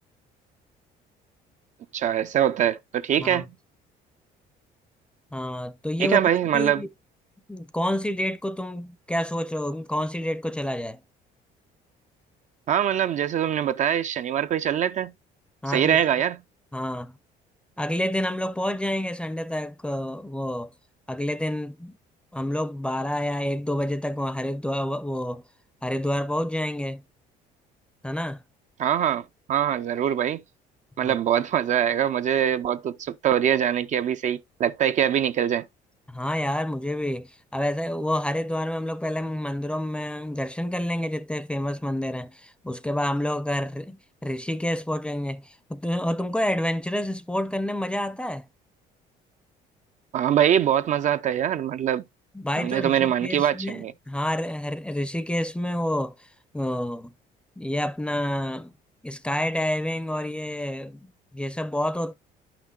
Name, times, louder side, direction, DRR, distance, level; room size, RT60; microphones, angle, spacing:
voice 1, 1.9-3.4 6.0-6.8 12.7-15.1 15.7-16.4 28.8-30.4 31.0-35.7 50.1-52.0 52.6-53.9, right 10 dB, 45° right, 0.4 m, -23 dB
voice 2, 5.3-6.2 6.5-6.9 7.5-11.0 15.6-16.0 16.7-17.2 17.8-20.7 21.1-21.9 22.3-25.4 25.8-27.0 28.0-28.4 31.0-31.1 36.1-48.5 52.3-56.3 56.5-57.1 57.6-58.7 59.0-62.1, left 1 dB, 5° left, 0.5 m, -28 dB
11.0 x 5.9 x 2.3 m
cardioid pair, 110°, 17 cm